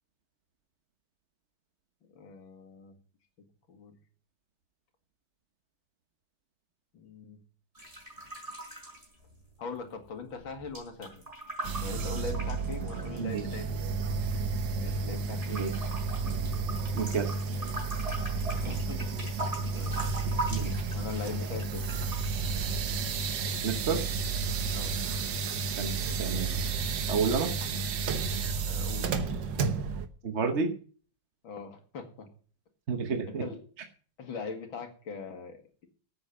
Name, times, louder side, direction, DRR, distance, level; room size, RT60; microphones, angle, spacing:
voice 1, 2.1-2.9 3.7-3.9 6.9-7.4 9.6-11.2 11.8-13.9 14.8-15.7 18.4-19.1 19.8-20.0 20.9-21.8 24.7-25.0 28.7-29.1 31.4-32.3 33.3-33.6 34.2-35.9, left 5 dB, 85° left, 5 dB, 2.8 m, -41 dB
sound 1, 7.7-9.8 10.1-13.4 14.0-15.0 15.4-22.3, right 1 dB, 15° right, 5.0 m, -41 dB
sound 2, 11.6-30.1, right 4 dB, 70° right, 1.7 m, -32 dB
voice 2, 16.9-17.3 20.5-20.7 23.6-24.1 25.8-26.6 27.1-27.5 30.2-30.7 32.9-33.4, right 5 dB, 40° right, 6 dB, 1.2 m, -30 dB
10.0 x 8.8 x 7.2 m, 0.42 s
omnidirectional pair, 2.1 m